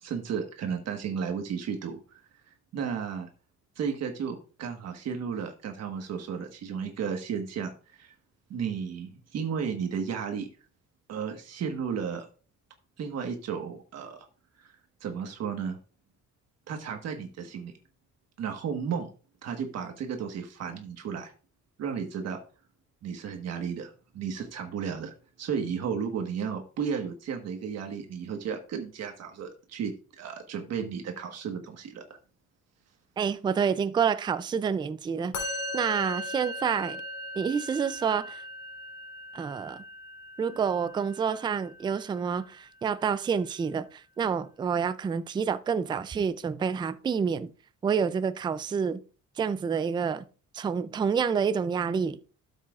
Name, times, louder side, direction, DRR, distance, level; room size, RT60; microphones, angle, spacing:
voice 1, 0.0-2.2 2.7-3.3 3.7-8.1 8.5-10.5 11.1-12.3 13.0-14.3 14.6-14.7 15.0-15.8 16.7-17.7 18.4-19.1 19.4-21.3 21.8-22.4 23.0-32.0, right 7 dB, 55° right, 1.4 m, -33 dB
voice 2, 33.2-37.0 37.4-38.4 39.3-39.8 40.4-47.5 47.8-49.0 49.4-50.2 50.5-52.2, right 6 dB, 15° right, 0.3 m, -28 dB
Musical instrument, 35.3-42.6, left 1 dB, 75° left, 3.5 m, -39 dB
13.0 x 7.5 x 2.4 m
cardioid pair, 160°, 30 cm